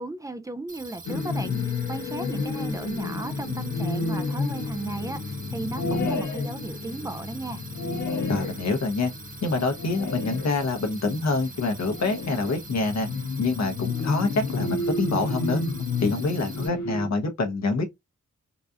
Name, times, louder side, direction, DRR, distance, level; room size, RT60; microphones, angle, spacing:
voice 1, 0.0-7.6, right 2 dB, 10° right, 0.4 m, -35 dB
sound 1, 0.7-16.7, right 4 dB, 25° right, 1.0 m, -44 dB
sound 2, 1.1-17.1, left 3 dB, 90° left, 0.8 m, -31 dB
voice 2, 8.3-9.1 9.4-13.1 13.4-15.6 16.0-17.8, left 3 dB, 65° left, 1.0 m, -26 dB
3.9 x 2.4 x 2.7 m
wide cardioid pair, 170°, 29 cm